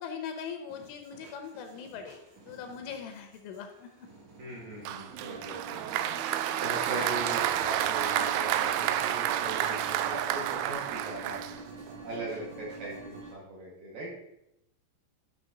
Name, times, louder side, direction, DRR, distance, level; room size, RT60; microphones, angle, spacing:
voice 1, 0.0-2.2 2.5-3.9 6.9-7.1, left 7 dB, 80° left, 6 dB, 3.1 m, -40 dB
sound 1, 0.7-13.3, right 3 dB, 70° right, 4.8 m, -47 dB
voice 2, 4.4-6.1 6.6-11.4 12.0-14.1, right 1 dB, 50° right, -5 dB, 3.2 m, -40 dB
Applause, 4.9-12.0, right 11 dB, 85° right, 2.6 m, -30 dB
11.5 x 6.5 x 3.9 m, 0.82 s
omnidirectional pair, 5.8 m